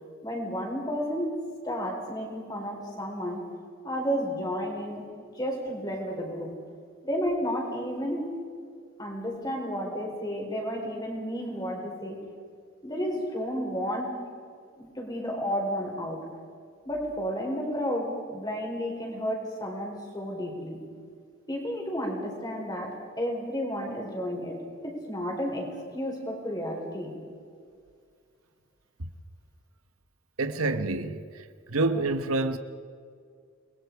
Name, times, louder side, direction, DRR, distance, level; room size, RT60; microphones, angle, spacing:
voice 1, 0.2-3.5 3.8-5.1 5.3-6.5 7.0-8.4 9.0-12.2 12.8-14.2 14.8-16.3 16.8-20.8 21.5-27.1, equal, 20° left, 4.6 m, -32 dB
voice 2, 30.4-32.6, right 2 dB, 85° right, 1.3 m, -28 dB
29.0 x 21.5 x 4.8 m
head